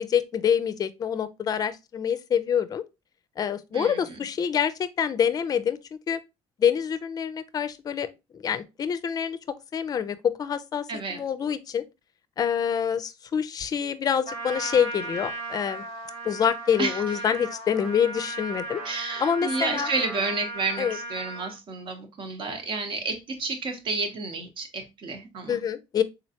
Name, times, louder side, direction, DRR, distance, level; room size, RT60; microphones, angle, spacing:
voice 1, 0.0-2.8 3.4-5.8 6.1-6.2 6.6-8.1 8.3-9.4 9.7-10.8 11.1-11.8 12.4-15.8 16.2-18.8 19.2-19.9 20.8-21.0 25.5-26.0, left 8 dB, 35° left, 0.4 m, -26 dB
voice 2, 3.7-4.2 10.9-11.2 16.8-17.0 18.8-25.6, right 3 dB, 55° right, 1.0 m, -31 dB
Trumpet, 14.2-21.6, right 2 dB, 90° right, 1.9 m, -36 dB
3.9 x 3.1 x 2.8 m
cardioid pair, 115°, 10 cm